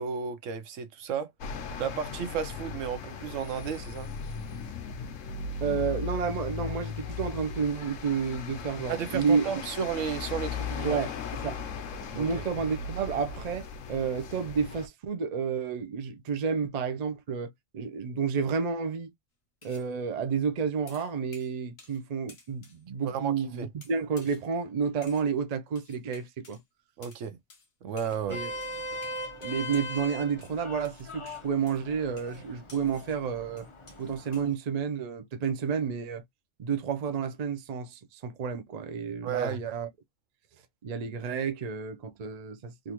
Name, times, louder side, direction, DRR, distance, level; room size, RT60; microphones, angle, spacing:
voice 1, 0.0-1.3 1.8-4.1 8.9-11.0 12.1-12.4 23.0-23.7 27.0-27.4 27.8-28.4 39.2-39.6, right 7 dB, 75° right, 1.0 m, -33 dB
sound 1, 1.4-14.9, left 5 dB, 75° left, 1.1 m, -37 dB
voice 2, 5.6-9.5 10.8-11.1 11.4-11.6 12.0-19.1 19.6-26.6 28.3-28.5 29.4-33.7 34.0-36.2 36.6-39.9 40.8-42.9, right 6 dB, 50° right, 0.5 m, -30 dB
sound 2, 19.6-19.9 20.9-22.0 22.3-22.8 23.8-24.5 25.0-25.3 25.8-26.6 27.0-27.2 27.5-27.7 28.0-28.2 28.6-30.1 30.4-33.2 33.6-34.6, left 3 dB, 55° left, 1.2 m, -54 dB
Vehicle horn car horn honking, 28.1-34.5, left 1 dB, 30° left, 0.6 m, -40 dB
3.4 x 2.5 x 2.9 m
omnidirectional pair, 1.4 m